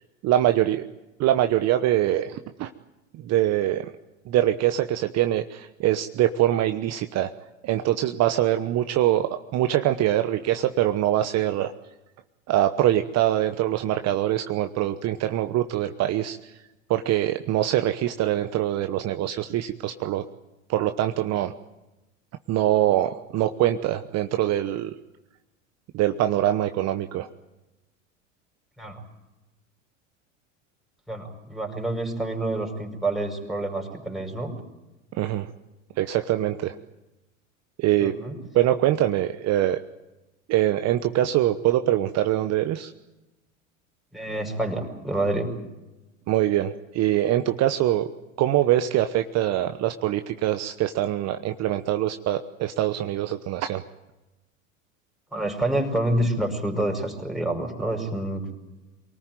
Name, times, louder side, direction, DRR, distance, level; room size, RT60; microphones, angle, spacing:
voice 1, 0.2-0.8 1.2-2.7 3.2-3.9 4.3-7.3 7.6-11.7 12.5-16.4 16.9-20.2 20.7-21.5 22.5-24.9 25.9-27.3 35.2-35.5 36.0-36.8 37.8-38.2 38.5-39.8 40.5-42.9 46.3-48.1 48.4-53.8, right 13 dB, 40° right, 8 dB, 1.1 m, -23 dB
voice 2, 31.1-34.5 38.0-38.4 44.1-45.6 55.3-58.5, right 1 dB, ahead, 2 dB, 5.5 m, -27 dB
24.0 x 19.0 x 9.3 m, 1.0 s
hypercardioid pair, 85°, 38 cm